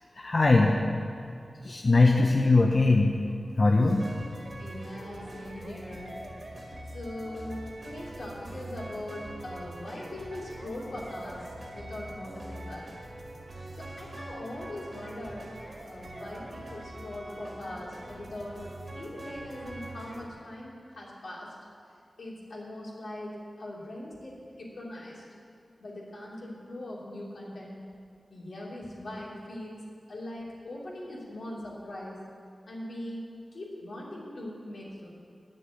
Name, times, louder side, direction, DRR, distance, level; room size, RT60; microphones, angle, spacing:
voice 1, 0.2-0.8 1.6-3.1 3.6-4.1, left 3 dB, 50° left, 1 dB, 0.7 m, -21 dB
sound 1, 3.9-20.3, right 1 dB, 55° right, 1.7 m, -43 dB
voice 2, 4.6-6.1 6.9-12.9 13.8-15.5 15.8-18.6 18.9-21.5 22.2-24.3 24.6-25.2 25.8-27.8 28.3-29.8 30.1-32.2 32.7-33.2 33.5-35.1, left 1 dB, 85° left, -5 dB, 2.8 m, -41 dB
9.4 x 6.7 x 8.9 m, 2.3 s
wide cardioid pair, 95°, 0 cm